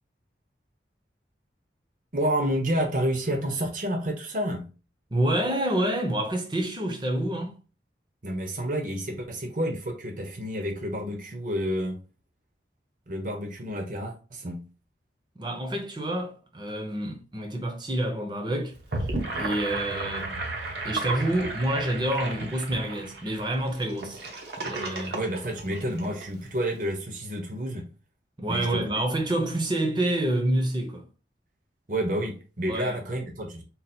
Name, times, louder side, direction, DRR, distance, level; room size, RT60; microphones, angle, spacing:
voice 1, 2.1-4.6 8.2-12.0 13.1-14.6 25.1-27.9 28.5-28.9 31.9-33.6, equal, 50° right, 0.8 m, -29 dB
voice 2, 5.1-7.6 15.4-19.1 19.3-20.4 20.8-24.2 24.6-25.2 28.4-31.0 32.7-33.0, right 1 dB, 25° right, 0.7 m, -28 dB
Gurgling / Sink (filling or washing), 18.7-26.2, right 2 dB, 70° right, 0.9 m, -33 dB
4.0 x 2.0 x 4.2 m
head